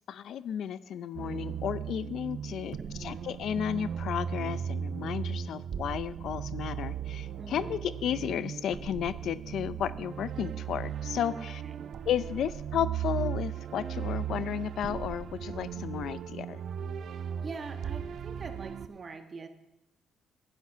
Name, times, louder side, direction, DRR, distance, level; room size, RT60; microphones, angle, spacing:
voice 1, 0.1-11.6 12.1-16.6, left 9 dB, 70° left, 17 dB, 0.5 m, -33 dB
sound 1, 1.1-18.9, right 9 dB, 65° right, 0.6 m, -37 dB
voice 2, 2.8-3.3 7.4-7.8 11.3-12.0 17.1-19.5, right 4 dB, 40° right, 8 dB, 1.3 m, -44 dB
11.0 x 10.5 x 5.6 m, 0.90 s
cardioid pair, 90°, 0 cm